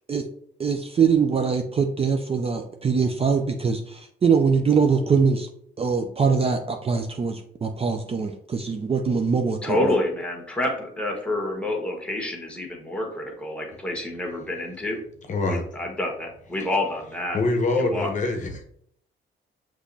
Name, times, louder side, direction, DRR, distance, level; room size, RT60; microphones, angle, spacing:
voice 1, 0.6-5.5 5.8-10.0, right 5 dB, 30° right, 5 dB, 0.4 m, -23 dB
voice 2, 9.6-15.0 15.4-17.4 17.8-18.1, left 1 dB, 5° left, 1 dB, 1.3 m, -28 dB
voice 3, 15.3-15.7 17.3-18.6, left 3 dB, 40° left, 3 dB, 0.8 m, -24 dB
6.2 x 3.0 x 2.7 m, 0.65 s
cardioid pair, 90°, 20 cm